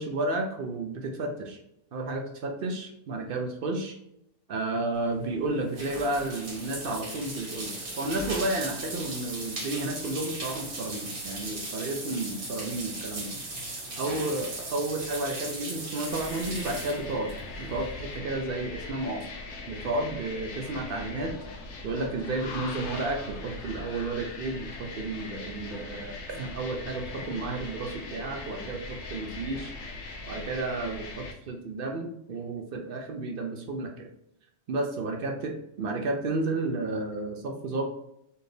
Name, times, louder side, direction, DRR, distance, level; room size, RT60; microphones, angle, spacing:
voice 1, 0.0-1.6 1.9-4.0 4.5-13.3 14.0-17.3 17.6-19.3 19.7-21.3 21.8-29.7 30.3-34.1 34.7-37.8, right 2 dB, 65° right, 3 dB, 0.5 m, -32 dB
sound 1, 4.9-18.1, right 2 dB, 85° right, 1.7 m, -38 dB
sound 2, 16.1-31.3, left 3 dB, 60° left, 0.9 m, -40 dB
4.4 x 2.6 x 3.3 m, 0.78 s
omnidirectional pair, 1.5 m